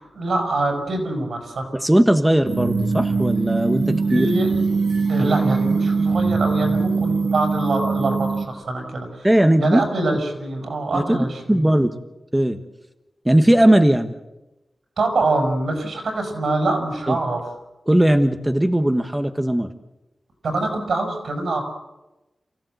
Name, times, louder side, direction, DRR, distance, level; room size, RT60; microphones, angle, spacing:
voice 1, 0.0-1.7 4.1-4.8 5.1-9.3 9.6-11.7 15.0-17.4 20.4-21.6, right 2 dB, 85° right, 4 dB, 6.4 m, -24 dB
voice 2, 1.8-4.3 9.2-10.2 10.9-11.2 11.5-12.0 12.3-12.6 13.2-14.1 17.1-17.2 17.9-19.7, right 1 dB, 10° right, 7 dB, 1.3 m, -18 dB
sound 1, 2.5-8.4, right 4 dB, 55° right, 1.9 m, -22 dB
28.5 x 16.0 x 8.1 m, 0.99 s
wide cardioid pair, 100°, 0 cm